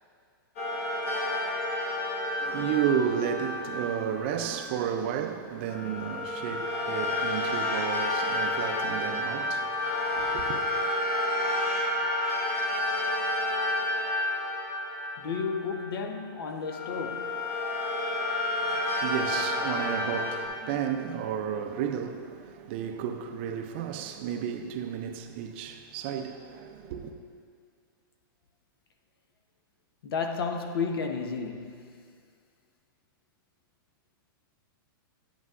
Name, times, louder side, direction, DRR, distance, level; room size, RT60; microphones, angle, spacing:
sound 1, 0.6-4.7 5.7-16.1 16.6-20.5, left 1 dB, 45° left, 1.3 m, -30 dB
voice 1, 2.4-9.7 10.1-10.6 18.7-27.2, right 8 dB, 30° right, 0.4 m, -32 dB
voice 2, 15.2-17.4 30.0-31.9, left 5 dB, 90° left, 0.8 m, -32 dB
10.0 x 8.0 x 2.4 m
supercardioid pair, 175°, 12 cm